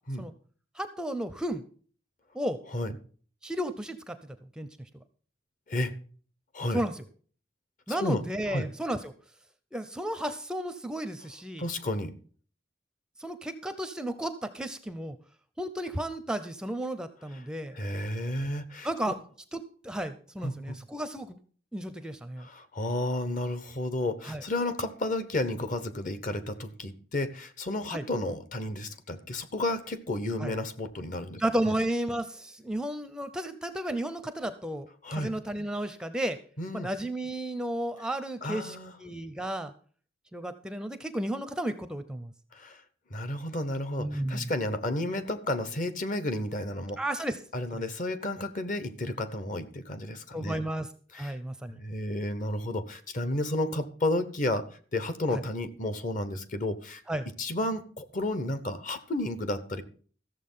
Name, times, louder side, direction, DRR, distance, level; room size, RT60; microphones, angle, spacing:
voice 1, 0.8-1.6 2.3-2.6 3.4-4.2 4.6-4.7 6.7-7.0 7.9-9.1 9.7-11.7 13.2-15.2 15.6-17.8 18.8-19.2 19.5-21.4 21.7-22.5 24.3-24.4 27.9-28.0 30.4-30.5 31.4-36.4 36.7-39.7 40.3-42.3 44.0-44.5 47.0-47.4 47.7-47.8 50.3-50.9 51.1-51.8 55.3-55.4 57.1-57.3, right 1 dB, 5° right, 11 dB, 0.6 m, -33 dB
voice 2, 7.9-8.2 8.5-8.7 11.6-12.1 17.7-19.1 20.4-20.8 22.4-31.7 35.0-35.3 36.6-36.9 38.4-38.9 42.5-42.8 43.1-47.0 47.5-50.6 51.1-51.3 51.7-54.7 54.9-57.0 57.4-59.8, left 1 dB, 40° left, 12 dB, 1.0 m, -32 dB
14.0 x 7.1 x 5.5 m, 0.44 s
head